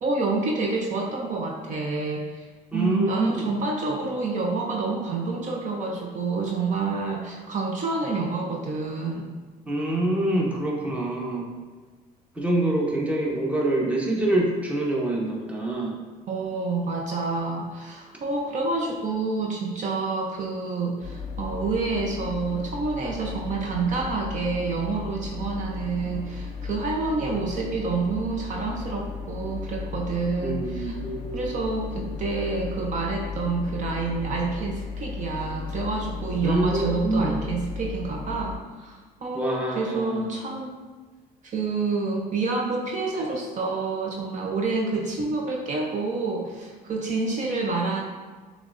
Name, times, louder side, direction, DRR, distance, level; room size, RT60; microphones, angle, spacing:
voice 1, 0.0-2.5 2.7-9.3 16.3-31.0 31.3-40.8 41.4-48.0, right 3 dB, 45° right, 0 dB, 0.7 m, -28 dB
voice 2, 2.7-3.5 9.7-11.5 12.3-16.0 30.4-31.5 36.4-37.3 39.3-40.3, right 1 dB, 10° right, -2 dB, 0.9 m, -26 dB
sound 1, 21.0-38.6, left 5 dB, 40° left, 0.6 m, -35 dB
6.5 x 3.2 x 2.6 m, 1.4 s
cardioid pair, 110°, 17 cm